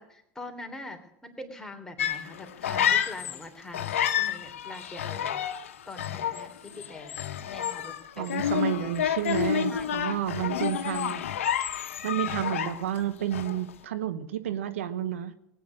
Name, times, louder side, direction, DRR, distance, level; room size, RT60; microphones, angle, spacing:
voice 1, 0.0-5.4 5.9-7.2 7.4-8.3 8.8-9.0 9.7-10.2, left 2 dB, 5° left, 3 dB, 3.2 m, -43 dB
sound 1, 2.0-3.4 3.7-13.0 13.3-13.7, left 9 dB, 85° left, 0.9 m, -30 dB
voice 2, 8.2-11.2 12.0-15.3, right 11 dB, 85° right, 12 dB, 1.0 m, -30 dB
18.5 x 9.3 x 6.4 m, 0.79 s
hypercardioid pair, 80°, 7 cm